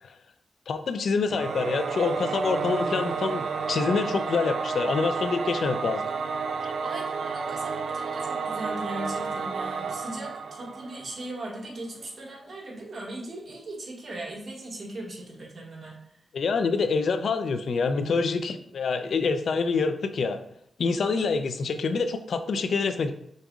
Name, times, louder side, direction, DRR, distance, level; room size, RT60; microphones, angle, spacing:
voice 1, 0.7-6.0 6.6-6.7 16.3-20.4 20.8-23.1, left 4 dB, 75° left, 9 dB, 0.4 m, -26 dB
Singing / Musical instrument, 1.3-11.3, right 5 dB, 80° right, 0.4 m, -31 dB
voice 2, 6.8-16.2, right 1 dB, 55° right, -3 dB, 1.8 m, -38 dB
5.2 x 4.0 x 2.4 m, 0.73 s
cardioid pair, 70°, 0 cm